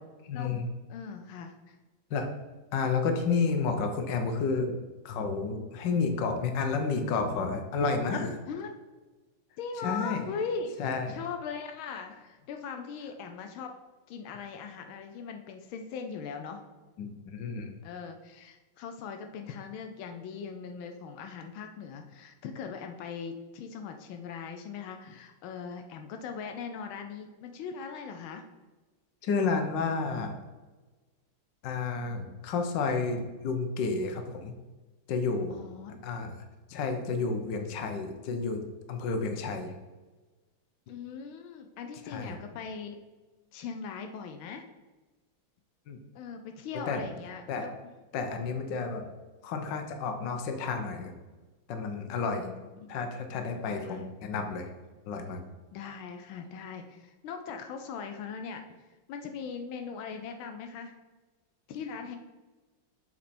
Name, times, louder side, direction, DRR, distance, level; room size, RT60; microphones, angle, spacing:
voice 1, 0.3-0.7 2.1-2.3 2.7-4.7 5.0-8.4 9.8-10.3 10.8-11.2 14.3-14.5 17.0-17.7 29.2-30.4 31.6-34.5 35.1-35.6 36.0-36.4 36.7-38.6 38.9-39.7 42.1-42.4 45.9-46.0 46.9-47.0 47.5-47.7 48.1-49.1 49.4-51.1 51.7-52.5 52.9-54.7 55.1-55.4, left 4 dB, 70° left, 5 dB, 1.5 m, -31 dB
voice 2, 0.9-1.8 8.5-8.7 9.6-10.8 11.1-13.7 14.1-16.6 17.8-28.4 35.5-36.0 40.9-43.0 43.5-44.6 46.1-47.7 52.4-52.7 53.3-54.1 55.7-58.6 59.1-60.9 61.7-62.2, left 6 dB, 85° left, 5 dB, 1.4 m, -40 dB
7.5 x 4.3 x 4.2 m, 1.2 s
omnidirectional pair, 2.2 m